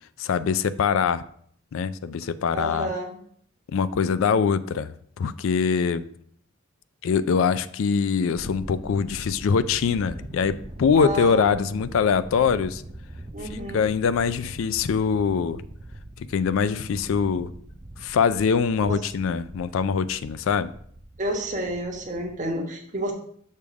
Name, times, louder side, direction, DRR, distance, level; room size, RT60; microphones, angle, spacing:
voice 1, 0.2-1.2 1.7-2.9 3.7-6.0 7.0-12.8 13.5-15.6 16.2-17.5 18.0-20.7, left 6 dB, 70° left, 15 dB, 0.4 m, -23 dB
voice 2, 2.5-3.1 10.9-11.8 13.3-13.9 18.9-19.0 21.2-23.1, right 1 dB, 40° right, 2 dB, 1.2 m, -30 dB
Thunder, 8.3-22.6, right 1 dB, 20° right, 0.5 m, -42 dB
6.5 x 3.5 x 6.0 m, 0.63 s
head